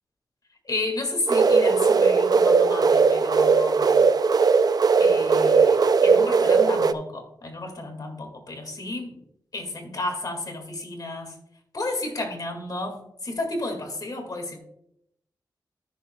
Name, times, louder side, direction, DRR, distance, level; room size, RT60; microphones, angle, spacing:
voice 1, 0.6-4.1 4.6-9.2 9.5-11.4 11.7-14.6, left 2 dB, 55° left, 3 dB, 2.2 m, -32 dB
sound 1, 1.3-6.9, right 5 dB, 55° right, 0.5 m, -18 dB
13.0 x 6.7 x 2.4 m, 0.75 s
cardioid pair, 70°, 8 cm